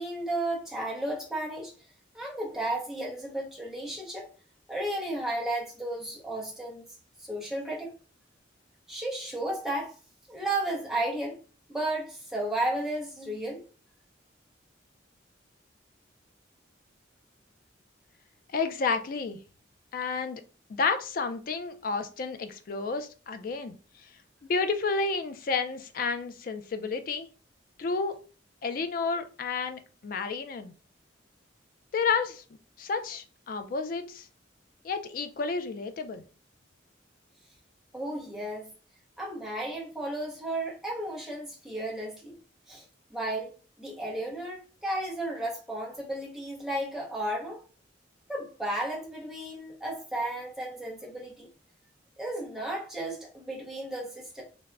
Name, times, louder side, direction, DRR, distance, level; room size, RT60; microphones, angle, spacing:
voice 1, 0.0-1.7 2.1-4.3 4.7-6.9 7.2-7.9 8.9-9.9 10.3-11.4 11.7-13.6 37.9-38.7 39.2-42.4 42.7-42.8 43.1-47.6 48.3-51.5 52.2-54.4, right 1 dB, ahead, 0.6 m, -33 dB
voice 2, 18.5-19.4 19.9-20.4 20.7-23.7 24.5-27.3 27.8-28.2 28.6-30.7 31.9-32.4 32.8-34.3 34.8-36.2, left 4 dB, 45° left, 0.3 m, -31 dB
3.3 x 2.0 x 2.4 m
head